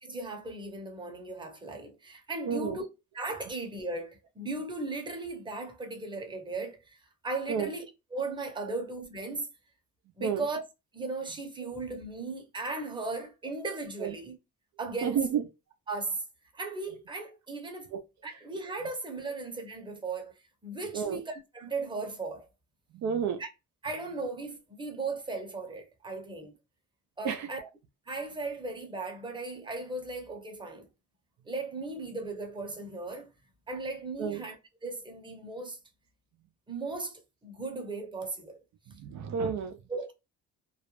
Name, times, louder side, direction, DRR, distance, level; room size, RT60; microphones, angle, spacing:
voice 1, 0.0-2.9 3.1-7.0 7.2-7.9 8.1-9.5 10.2-10.6 10.9-14.4 14.8-15.2 15.9-16.2 16.5-17.9 18.2-20.3 20.6-22.5 23.4-23.5 23.8-26.5 27.2-27.6 28.1-30.9 31.5-33.3 33.7-34.6 34.8-35.8 36.7-38.6 39.9-40.1, right 3 dB, 15° right, 0.8 m, -37 dB
voice 2, 2.5-2.8 7.5-7.7 10.2-10.5 11.6-11.7 14.0-14.1 15.0-15.4 17.9-18.0 19.2-19.3 20.9-21.2 22.9-23.4 27.2-27.7 34.2-34.4 38.9-39.8, right 7 dB, 65° right, 0.5 m, -31 dB
2.4 x 2.0 x 3.0 m
cardioid pair, 90°, 30 cm